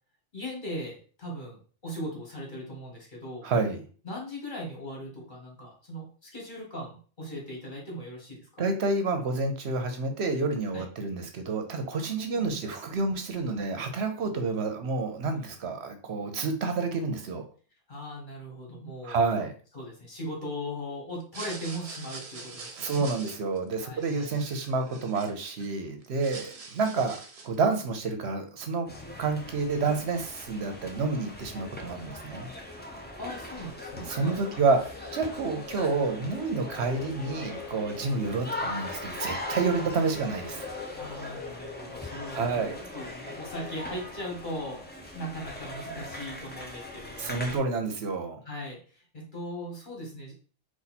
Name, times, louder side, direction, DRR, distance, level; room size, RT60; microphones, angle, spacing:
voice 1, 0.3-3.5 4.0-8.5 10.7-10.9 12.2-12.6 17.9-19.4 19.7-23.1 23.8-24.3 33.2-34.6 39.8-39.9 40.9-47.6 48.4-50.3, equal, 45° left, -2 dB, 1.8 m, -39 dB
voice 2, 3.4-3.8 8.6-17.4 19.0-19.5 22.8-27.2 27.4-28.9 29.2-32.5 34.1-40.7 42.3-42.8 47.2-48.4, right 4 dB, 70° right, 6 dB, 0.9 m, -29 dB
sound 1, 21.2-25.7 26.0-27.6, right 4 dB, 40° right, 0.5 m, -44 dB
sound 2, 28.9-47.6, left 1 dB, 10° left, 0.6 m, -40 dB
sound 3, 33.8-43.8, left 7 dB, 85° left, 1.0 m, -45 dB
4.1 x 2.5 x 4.1 m, 0.40 s
omnidirectional pair, 1.2 m